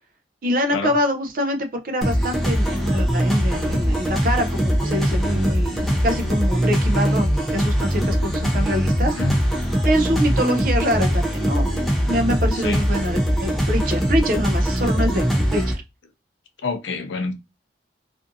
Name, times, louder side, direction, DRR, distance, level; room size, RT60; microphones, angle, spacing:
voice 1, 0.4-9.2 9.8-11.8 12.1-15.8, equal, 45° right, 0.4 m, -25 dB
sound 1, 2.0-15.7, equal, ahead, 0.5 m, -21 dB
voice 2, 9.0-9.3 12.5-12.8 16.6-17.3, left 3 dB, 85° left, 0.5 m, -27 dB
2.5 x 2.5 x 2.5 m
head